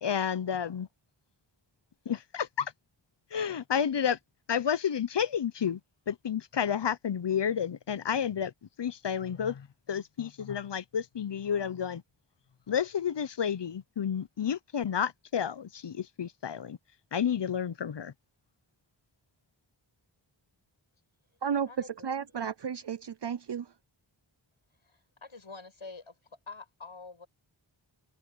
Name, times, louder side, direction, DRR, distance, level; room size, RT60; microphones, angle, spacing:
voice 1, 0.0-0.9 2.1-2.7 3.3-4.2 4.5-5.8 6.1-8.5 8.8-12.0 12.7-16.8 17.1-18.1, left 8 dB, 60° left, 0.7 m, -31 dB
voice 2, 21.4-23.7, right 7 dB, 60° right, 0.6 m, -33 dB
voice 3, 24.8-26.1 26.5-27.3, left 4 dB, 85° left, 7.8 m, -46 dB
open air
wide cardioid pair, 50°, 48 cm